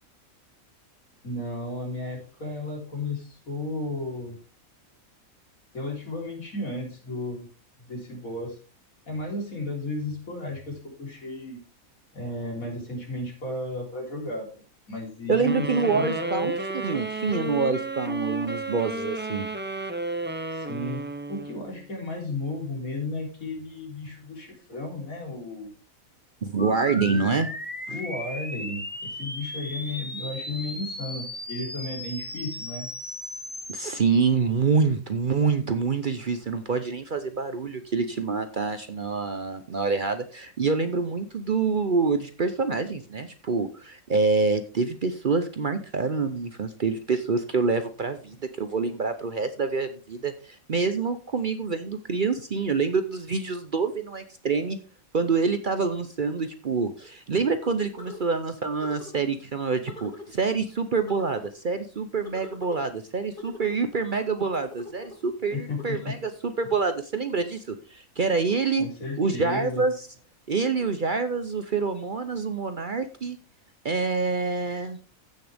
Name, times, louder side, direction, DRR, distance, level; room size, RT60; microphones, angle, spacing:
voice 1, 1.2-4.4 5.7-7.5 7.8-8.6 9.1-11.6 12.1-14.6 14.9-16.5 20.5-25.7 27.9-32.9 65.5-66.2 68.8-69.9, left 2 dB, 80° left, -1 dB, 4.2 m, -34 dB
voice 2, 15.3-19.5 26.4-27.5 33.7-54.8 55.1-68.9 69.2-69.9 70.5-73.4 73.8-75.0, right 4 dB, 45° right, 10 dB, 0.8 m, -26 dB
sound 1, 15.4-21.8, right 2 dB, 10° right, 0.5 m, -32 dB
sound 2, 26.6-34.0, left 1 dB, 10° left, 0.9 m, -36 dB
sound 3, 58.0-58.4 58.8-59.2 59.9-60.3 61.1-61.5 62.2-62.9 63.4-63.9 64.5-65.2 65.7-65.9, left 2 dB, 40° left, 2.8 m, -42 dB
15.0 x 6.6 x 3.5 m, 0.34 s
omnidirectional pair, 1.5 m